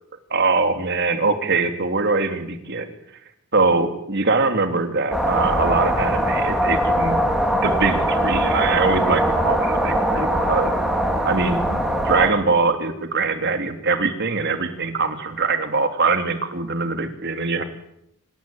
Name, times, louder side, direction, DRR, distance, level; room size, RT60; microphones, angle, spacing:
voice 1, 0.3-2.9 3.5-10.7 11.2-17.6, right 3 dB, 50° right, 7 dB, 3.1 m, -22 dB
sound 1, 5.1-12.3, right 1 dB, ahead, 4.0 m, -21 dB
26.5 x 20.0 x 9.2 m, 0.77 s
head